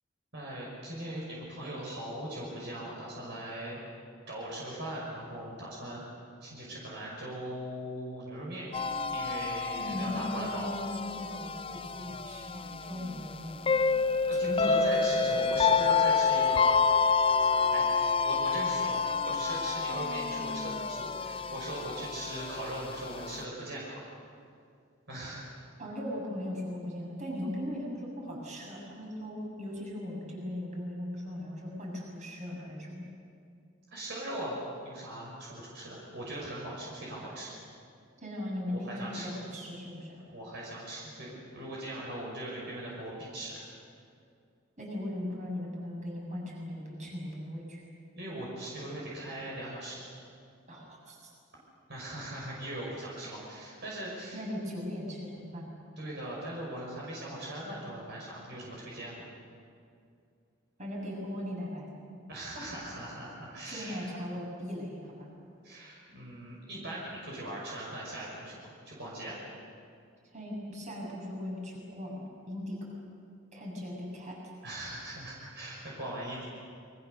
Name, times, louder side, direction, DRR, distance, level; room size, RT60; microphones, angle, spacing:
voice 1, 0.3-3.8 4.3-8.7 9.1-10.7 14.3-16.9 17.3-24.0 25.1-25.5 33.9-37.5 38.6-39.4 40.3-43.6 48.1-50.0 51.9-54.4 56.0-59.2 62.3-64.1 65.6-69.4 74.6-76.5, right 1 dB, 60° right, -4 dB, 6.0 m, -40 dB
sound 1, 8.7-23.4, left 5 dB, 25° left, 0.5 m, -28 dB
voice 2, 9.7-13.6 14.4-15.1 25.8-33.1 38.2-40.2 44.8-47.8 50.7-51.3 54.3-55.7 60.8-61.9 63.6-65.3 70.3-72.8 73.5-74.4, left 1 dB, 40° right, -2 dB, 7.2 m, -38 dB
28.5 x 23.5 x 6.8 m, 2.4 s
head